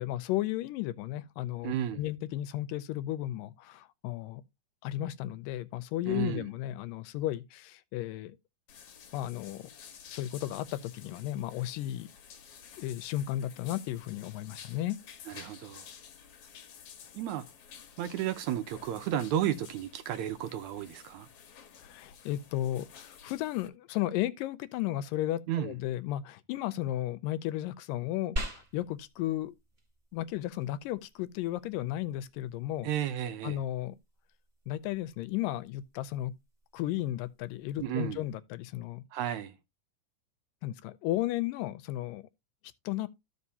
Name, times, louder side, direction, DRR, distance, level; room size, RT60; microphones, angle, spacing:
voice 1, 0.0-4.4 4.8-8.4 9.1-9.7 10.1-12.1 12.8-15.0 21.8-29.6 30.1-32.9 33.4-34.0 34.7-36.3 36.7-39.0 40.6-42.3 42.9-43.1, left 14 dB, 90° left, 2.3 m, -34 dB
voice 2, 1.6-2.0 6.1-6.5 15.3-15.8 17.1-17.4 18.0-21.3 25.5-25.7 32.8-33.6 37.8-38.2 39.1-39.6, right 11 dB, 75° right, 1.8 m, -33 dB
sound 1, 8.7-23.7, left 7 dB, 60° left, 1.8 m, -52 dB
sound 2, 28.4-38.4, equal, 20° right, 1.2 m, -45 dB
14.0 x 5.1 x 2.7 m
omnidirectional pair, 3.8 m